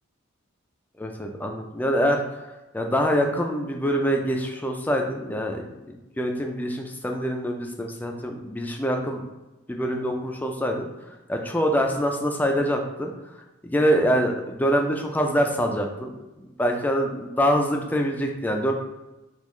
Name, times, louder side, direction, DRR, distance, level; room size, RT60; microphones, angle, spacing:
voice 1, 1.0-2.4 2.7-9.2 9.7-10.9 11.3-13.1 13.6-16.1 16.4-18.7, equal, 10° left, 2 dB, 0.3 m, -25 dB
3.7 x 2.4 x 3.1 m, 1.1 s
head